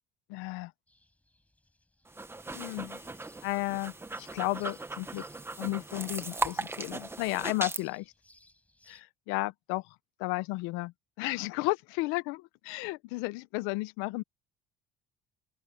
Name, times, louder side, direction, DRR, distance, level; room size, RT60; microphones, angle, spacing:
voice 1, 0.3-0.7 2.5-3.0 3.4-5.3 5.6-8.1 8.9-9.8 10.2-14.2, left 22 dB, 90° left, 0.8 m, -33 dB
sound 1, 0.9-9.0, left 1 dB, 5° left, 7.9 m, -64 dB
sound 2, 2.1-7.8, right 2 dB, 10° right, 1.3 m, -38 dB
open air
cardioid pair, 115°, 20 cm